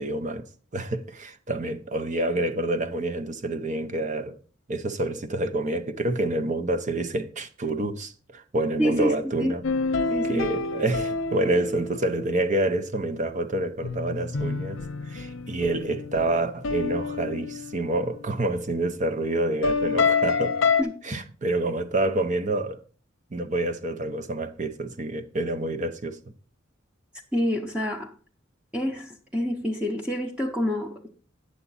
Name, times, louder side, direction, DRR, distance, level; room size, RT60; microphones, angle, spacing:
voice 1, 0.0-4.4 4.7-9.6 10.3-20.6 21.0-22.8 23.3-26.2, right 2 dB, 40° right, 0.7 m, -28 dB
voice 2, 8.8-9.1 9.4-9.5 10.1-10.5 20.8-21.2 27.3-28.1 28.7-31.1, equal, 5° right, 0.8 m, -27 dB
sound 1, 9.6-12.5 13.8-18.4 19.6-20.8, left 4 dB, 70° left, 0.7 m, -28 dB
8.9 x 7.0 x 4.0 m
head